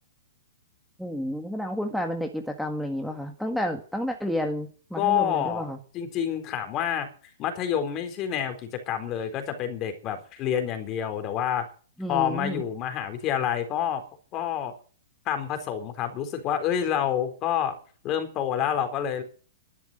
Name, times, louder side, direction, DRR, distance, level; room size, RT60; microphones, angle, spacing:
voice 1, 1.0-5.8 12.0-12.6, equal, ahead, 3 dB, 1.8 m, -30 dB
voice 2, 4.9-7.1 7.4-11.6 12.1-14.0 14.3-14.7 15.3-17.7 18.0-19.2, left 9 dB, 30° left, 7 dB, 3.9 m, -28 dB
12.0 x 10.5 x 9.0 m, 0.41 s
hypercardioid pair, 145°, 0 cm